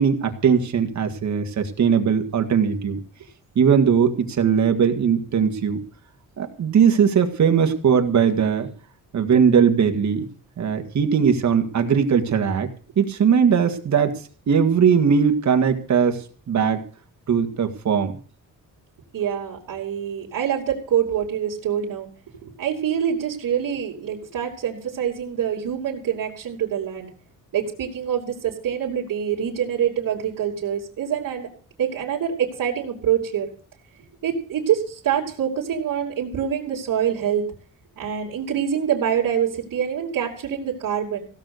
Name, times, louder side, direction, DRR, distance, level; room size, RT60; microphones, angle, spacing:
voice 1, 0.0-3.0 3.6-5.8 6.4-8.7 9.1-10.3 10.6-12.7 13.0-14.1 14.5-16.8 17.3-18.1, right 7 dB, 60° right, 6 dB, 1.9 m, -19 dB
voice 2, 19.1-22.1 22.4-27.1 27.5-31.5 31.8-33.5 34.2-37.4 38.0-41.2, right 9 dB, 75° right, -3 dB, 3.1 m, -25 dB
16.5 x 6.6 x 7.9 m, 0.42 s
wide cardioid pair, 150°, 33 cm